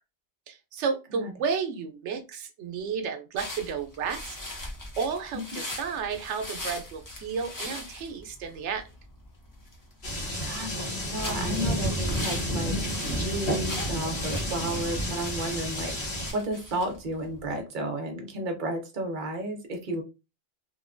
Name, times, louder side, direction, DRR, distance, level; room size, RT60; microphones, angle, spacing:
voice 1, 0.5-4.4 5.0-8.8, right 6 dB, 90° right, 0.9 m, -32 dB
sound 1, 3.4-17.6, left 1 dB, 25° left, 0.4 m, -41 dB
sound 2, 10.0-16.3, equal, 65° left, 1.2 m, -30 dB
voice 2, 10.4-20.0, right 1 dB, 50° right, 0.8 m, -33 dB
2.9 x 2.2 x 2.4 m
omnidirectional pair, 1.2 m